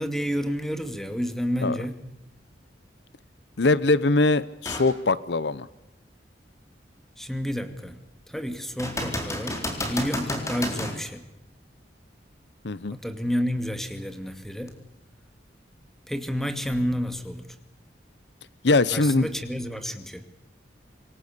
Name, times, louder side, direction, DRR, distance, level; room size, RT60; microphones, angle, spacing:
voice 1, 0.0-2.0 7.2-8.0 8.3-11.2 12.9-14.8 16.1-17.5 18.9-20.2, equal, ahead, 8 dB, 2.4 m, -30 dB
voice 2, 3.6-5.7 12.6-13.0 18.6-19.3, left 3 dB, 70° left, 18 dB, 0.8 m, -22 dB
sound 1, 4.6-4.9 5.5-5.6 8.8-11.0 14.7-14.8, left 1 dB, 15° left, 4.2 m, -31 dB
26.5 x 23.0 x 6.8 m, 0.88 s
head